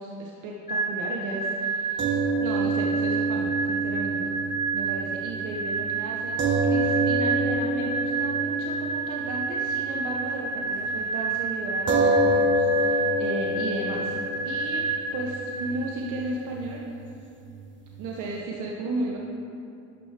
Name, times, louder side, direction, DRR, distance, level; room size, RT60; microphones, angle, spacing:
voice 1, 0.0-4.3 4.7-14.2 14.4-14.8 15.1-16.9 18.0-19.2, right 2 dB, 85° right, -1 dB, 0.9 m, -34 dB
sound 1, 0.7-16.3, right 4 dB, 25° left, 0.9 m, -30 dB
sound 2, 2.0-10.5 10.8-11.0 11.9-18.4, right 1 dB, 40° right, 1.0 m, -28 dB
11.5 x 6.3 x 3.3 m, 2.5 s
cardioid pair, 90°, 30 cm